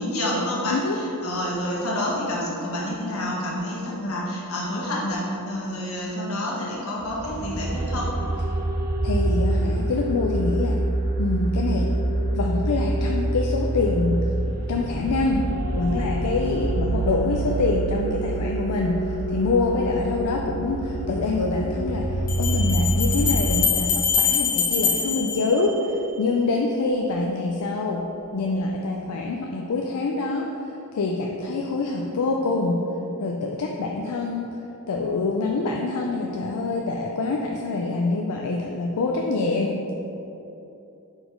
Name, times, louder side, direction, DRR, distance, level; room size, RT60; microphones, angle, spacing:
voice 1, 0.0-8.1 19.9-20.1, left 1 dB, 65° left, -4 dB, 1.4 m, -28 dB
voice 2, 0.7-1.0 9.0-10.8 11.2-11.9 12.3-14.3 14.5-30.5 30.9-32.9 33.2-34.6 34.9-40.0, left 3 dB, 85° left, 1 dB, 0.4 m, -25 dB
sound 1, 7.0-23.6, right 1 dB, 40° right, 0.6 m, -26 dB
Bell, 20.6-20.7 22.3-26.2, left 6 dB, 40° left, 1.0 m, -24 dB
4.9 x 4.1 x 5.1 m, 3.0 s
head